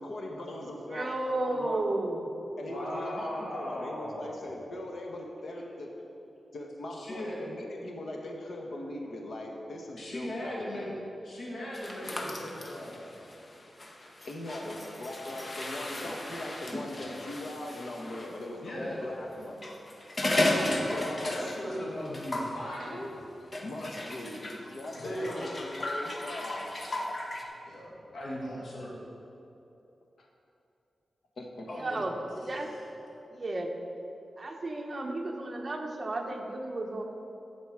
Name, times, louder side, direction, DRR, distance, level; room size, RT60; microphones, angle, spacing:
voice 1, 0.0-1.1 1.4-1.8 2.6-5.9 6.5-10.9 14.3-19.6 20.2-21.8 22.9-23.1 23.6-26.7 30.2-30.3 31.4-31.7 32.0-32.1, left 1 dB, 65° left, 1 dB, 1.4 m, -40 dB
voice 2, 0.9-2.3 31.8-32.7 33.3-33.7 34.4-37.0, right 2 dB, 35° right, 2 dB, 1.0 m, -33 dB
voice 3, 2.7-4.4 5.5-5.6 6.9-7.4 10.0-10.9 11.2-13.1 18.6-19.1 20.2-20.9 21.3-23.1 24.6-25.4 27.7-28.9 31.7-32.0 32.3-32.8, equal, 90° left, -6 dB, 2.4 m, -38 dB
sound 1, 11.7-18.3 19.4-21.8 22.0-22.6 23.5-27.4, left 1 dB, 35° left, 1.0 m, -35 dB
14.5 x 5.1 x 4.9 m, 2.9 s
wide cardioid pair, 110°, 0 cm